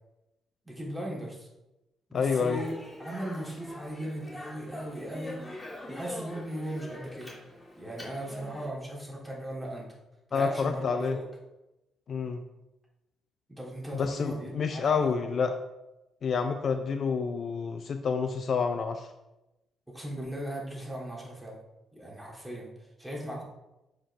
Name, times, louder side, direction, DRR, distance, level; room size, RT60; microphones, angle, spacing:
voice 1, 0.6-1.5 2.1-5.4 5.9-7.3 7.8-9.9 10.3-11.2 13.5-15.3 19.9-21.6 21.9-22.7 23.0-23.4, right 1 dB, 5° right, -4 dB, 2.4 m, -38 dB
voice 2, 2.1-2.6 10.3-11.2 12.1-12.4 13.9-15.5 16.2-19.1, left 5 dB, 55° left, 7 dB, 0.4 m, -28 dB
Speech, 2.2-8.7, left 1 dB, 20° left, 2.1 m, -43 dB
7.3 x 5.1 x 3.3 m, 0.96 s
cardioid pair, 90°, 0 cm